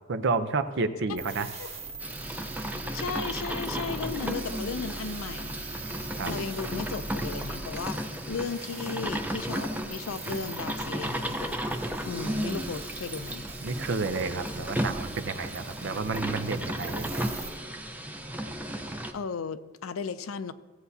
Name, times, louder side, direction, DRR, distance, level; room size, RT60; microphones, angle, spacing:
voice 1, 0.1-1.5 6.2-6.4 13.6-17.3, right 4 dB, 60° right, 10 dB, 0.6 m, -30 dB
sound 1, 1.2-17.5, right 3 dB, 30° right, 1.1 m, -42 dB
sound 2, 2.0-19.1, right 1 dB, 10° right, 0.5 m, -34 dB
voice 2, 2.9-5.6 6.3-8.0 8.3-11.5 12.1-13.5 19.1-20.5, left 5 dB, 85° left, 12 dB, 0.5 m, -35 dB
16.0 x 8.0 x 2.8 m, 1.4 s
head